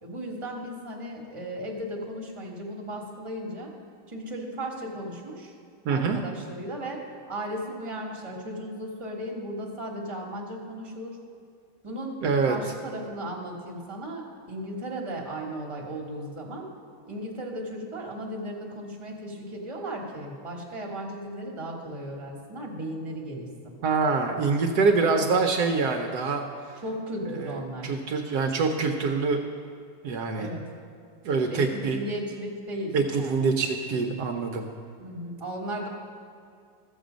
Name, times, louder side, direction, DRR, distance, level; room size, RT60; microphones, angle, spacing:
voice 1, 0.0-3.7 4.1-5.5 5.9-7.0 7.3-11.2 11.8-16.7 17.1-23.8 26.8-27.9 30.4-30.7 31.5-33.7 35.0-35.9, right 1 dB, 20° right, -1 dB, 1.4 m, -36 dB
voice 2, 5.8-6.2 12.2-12.6 23.8-26.4 27.3-27.6 27.8-29.4 30.0-30.5 31.2-32.0 32.9-34.7, right 4 dB, 70° right, 3 dB, 1.2 m, -25 dB
13.5 x 7.3 x 5.1 m, 2.3 s
omnidirectional pair, 1.9 m